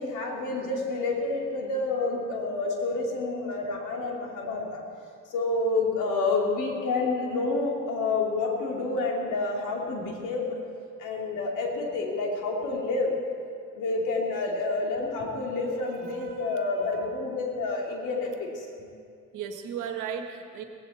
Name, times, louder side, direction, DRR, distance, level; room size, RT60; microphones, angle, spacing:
voice 1, 0.0-4.8 5.2-10.6 11.0-13.1 13.7-18.9, left 3 dB, 85° left, 0 dB, 2.7 m, -29 dB
voice 2, 16.0-17.1 19.3-20.6, right 8 dB, 90° right, 5 dB, 1.6 m, -37 dB
17.5 x 16.0 x 4.3 m, 2.3 s
cardioid pair, 90°, 30 cm